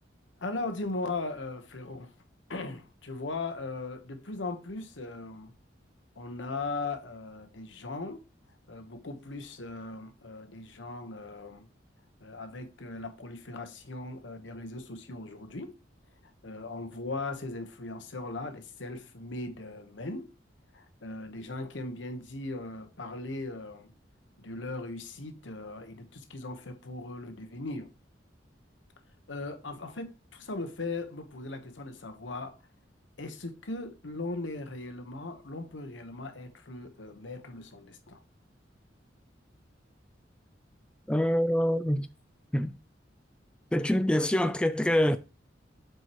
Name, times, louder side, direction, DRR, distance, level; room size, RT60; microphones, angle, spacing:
voice 1, 0.4-2.1 2.5-5.5 6.2-8.2 8.7-11.7 12.2-15.7 16.4-20.3 20.7-23.9 24.4-27.9 29.3-32.5 33.2-38.2, left 2 dB, 85° left, 1.1 m, -38 dB
voice 2, 41.1-42.1 42.5-42.8 43.7-45.2, equal, 5° left, 0.3 m, -25 dB
7.7 x 4.6 x 3.0 m
head